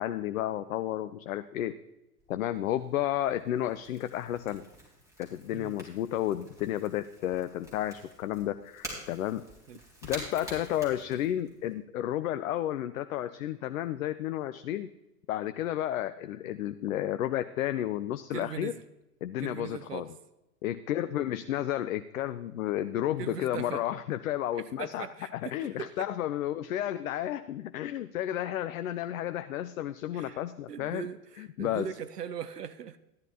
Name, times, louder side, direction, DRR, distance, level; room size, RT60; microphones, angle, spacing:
voice 1, 0.0-1.7 2.3-4.6 5.2-9.4 10.0-14.9 15.3-18.7 19.2-20.1 20.6-25.1 25.3-31.1 31.4-31.9, left 12 dB, 60° left, 12 dB, 0.6 m, -32 dB
Crackle / Crack, 2.2-11.7, equal, 5° right, 3.9 m, -48 dB
voice 2, 18.3-18.8 19.4-20.1 23.2-23.8 24.5-26.1 30.1-30.4 30.7-33.0, right 8 dB, 75° right, 13 dB, 0.7 m, -40 dB
15.0 x 10.5 x 2.8 m, 0.94 s
figure-of-eight pair, 100°, 48 cm